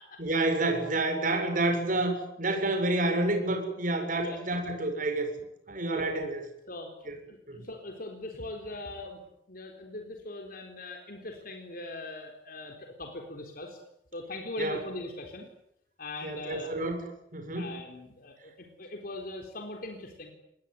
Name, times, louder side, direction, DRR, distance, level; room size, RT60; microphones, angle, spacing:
voice 1, 0.2-5.3 5.7-6.4 7.1-7.2 7.5-7.7 14.6-14.8 16.2-17.1 17.3-17.7, right 2 dB, 50° right, 5 dB, 7.1 m, -29 dB
voice 2, 7.3-9.2 9.5-13.8 14.1-15.5 16.0-16.7 17.6-20.3, left 2 dB, 55° left, 3 dB, 4.0 m, -40 dB
27.5 x 21.0 x 9.8 m, 0.79 s
head